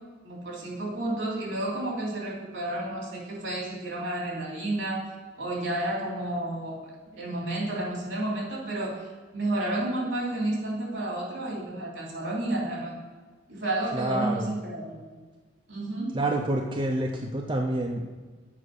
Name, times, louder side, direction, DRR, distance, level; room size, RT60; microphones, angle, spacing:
voice 1, 0.2-13.0 13.5-15.1 15.7-16.2, right 1 dB, 70° right, -4 dB, 3.0 m, -31 dB
voice 2, 13.9-14.5 16.1-18.2, right 1 dB, 25° right, 1 dB, 0.5 m, -28 dB
7.4 x 5.2 x 6.5 m, 1.4 s
head